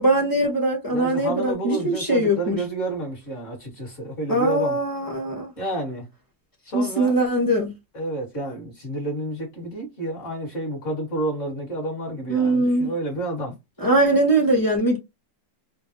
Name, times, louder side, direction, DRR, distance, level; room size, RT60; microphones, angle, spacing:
voice 1, 0.0-2.6 4.3-5.5 6.7-7.7 12.3-12.9 13.8-15.0, right 1 dB, 15° left, 0.8 m, -21 dB
voice 2, 0.9-4.8 5.6-6.1 6.7-7.2 7.9-13.5, right 2 dB, 45° left, 1.9 m, -30 dB
3.8 x 2.2 x 2.6 m
omnidirectional pair, 1.9 m